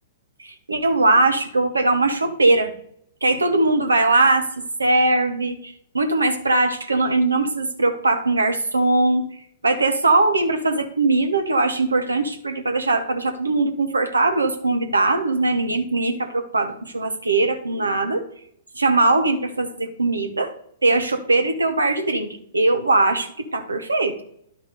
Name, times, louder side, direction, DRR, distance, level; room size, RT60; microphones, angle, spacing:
voice 1, 0.4-2.7 3.2-4.5 4.8-9.3 9.6-18.2 18.7-20.5 20.8-24.2, right 2 dB, 85° right, 6 dB, 1.1 m, -20 dB
11.0 x 5.0 x 4.1 m, 0.68 s
figure-of-eight pair, 115°, 0 cm